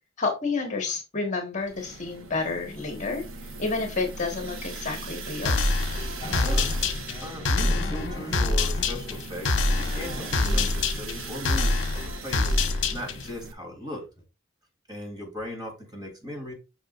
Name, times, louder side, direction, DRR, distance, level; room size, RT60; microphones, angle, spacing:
voice 1, 0.2-3.2 3.6-5.6, left 3 dB, 35° left, 1.5 m, -30 dB
sound 1, 1.6-13.5, right 3 dB, 85° right, 1.1 m, -39 dB
sound 2, 5.4-13.3, left 2 dB, 60° left, 1.1 m, -26 dB
sound 3, 6.2-8.9 9.4-10.4 13.3-13.4 13.9-14.2, left 1 dB, 20° left, 4.5 m, -39 dB
voice 2, 6.3-9.6 9.9-12.5 12.9-14.1 14.9-16.5, left 1 dB, 20° right, 3.2 m, -38 dB
8.1 x 6.0 x 2.5 m
head